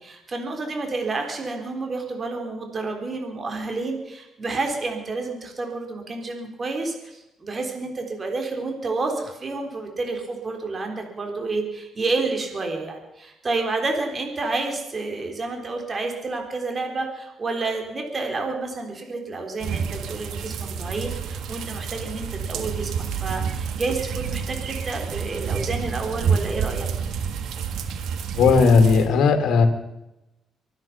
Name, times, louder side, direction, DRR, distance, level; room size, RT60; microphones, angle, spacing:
voice 1, 0.0-26.9, right 3 dB, 35° right, 3 dB, 3.7 m, -29 dB
sound 1, 19.6-29.1, right 6 dB, 80° right, 1.7 m, -29 dB
voice 2, 28.4-29.7, left 5 dB, 75° left, 6 dB, 2.6 m, -16 dB
24.5 x 9.7 x 6.0 m, 0.93 s
cardioid pair, 90°, 0 cm